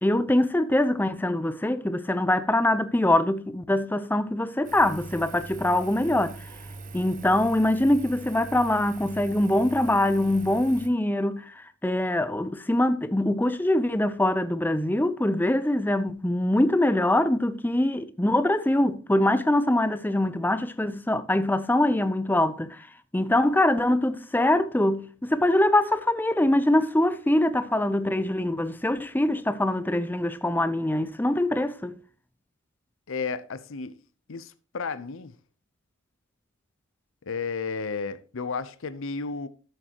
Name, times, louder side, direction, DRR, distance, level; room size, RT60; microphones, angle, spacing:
voice 1, 0.0-6.3 6.9-22.9 23.1-32.0, left 1 dB, 10° left, 0.6 m, -23 dB
Engine, 4.6-10.9, right 3 dB, 40° right, 0.9 m, -42 dB
voice 2, 33.1-33.9 34.3-35.4 37.2-39.5, left 4 dB, 65° left, 0.7 m, -32 dB
13.5 x 6.6 x 2.9 m
head